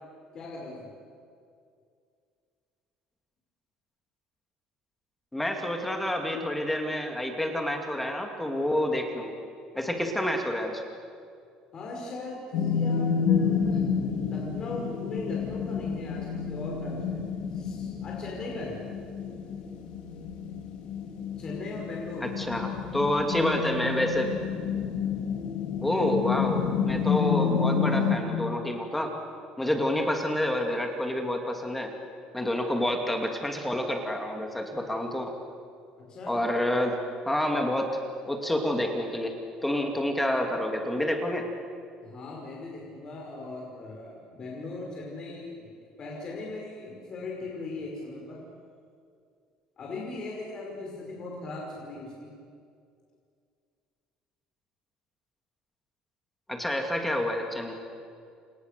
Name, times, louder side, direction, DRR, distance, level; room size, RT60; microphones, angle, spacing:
voice 1, 0.3-0.9 11.7-17.2 17.5-18.7 21.4-22.3 36.0-36.4 42.0-45.7 46.0-48.4 49.8-52.3, left 2 dB, 35° left, -2 dB, 5.6 m, -39 dB
voice 2, 5.3-9.3 9.7-10.8 22.2-24.3 25.8-29.1 29.6-31.9 32.3-35.3 36.3-37.0 37.3-38.0 38.3-39.3 39.6-41.5 56.5-57.7, left 1 dB, 5° left, 3 dB, 2.6 m, -28 dB
sound 1, 12.5-28.2, left 6 dB, 65° left, 3.5 m, -29 dB
29.0 x 28.0 x 6.8 m, 2.3 s
cardioid pair, 150°, 2 cm